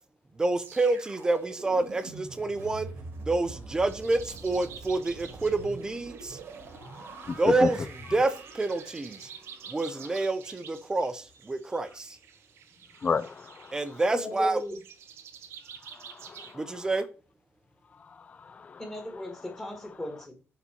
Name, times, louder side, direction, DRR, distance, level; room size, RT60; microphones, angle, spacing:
voice 1, 0.3-2.9 3.2-6.4 7.3-9.3 9.7-12.2 13.7-14.6 16.5-17.0, right 2 dB, 15° right, 0.6 m, -28 dB
sound 1, 0.6-11.7 12.0-12.2, right 3 dB, 60° right, 1.3 m, -45 dB
sound 2, 3.9-16.5, right 8 dB, 80° right, 0.9 m, -50 dB
voice 2, 7.3-7.7 13.0-13.8 16.1-16.5 18.4-18.8, left 5 dB, 30° left, 0.4 m, -30 dB
voice 3, 14.1-14.8 18.8-20.3, left 1 dB, 10° left, 1.5 m, -37 dB
6.9 x 4.1 x 4.3 m
cardioid pair, 155°, 4 cm